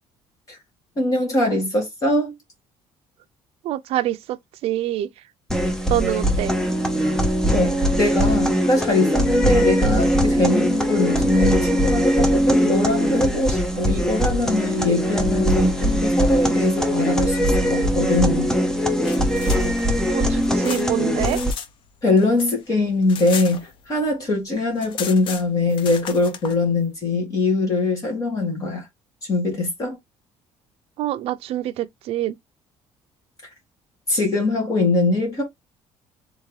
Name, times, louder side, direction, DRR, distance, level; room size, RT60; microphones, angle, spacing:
voice 1, 1.0-2.3 7.5-18.5 22.0-28.8 29.3-30.0 34.1-35.4, left 2 dB, 30° left, 2.0 m, -22 dB
voice 2, 3.6-5.1 5.9-6.6 20.1-21.4 31.0-32.4, right 13 dB, 60° right, 0.5 m, -26 dB
sound 1, 5.5-21.5, equal, 5° left, 0.6 m, -21 dB
sound 2, 18.9-21.7 22.0-24.1 24.4-24.5 24.7-26.6, left 7 dB, 45° left, 0.6 m, -35 dB
3.6 x 3.6 x 3.2 m
cardioid pair, 180°, 11 cm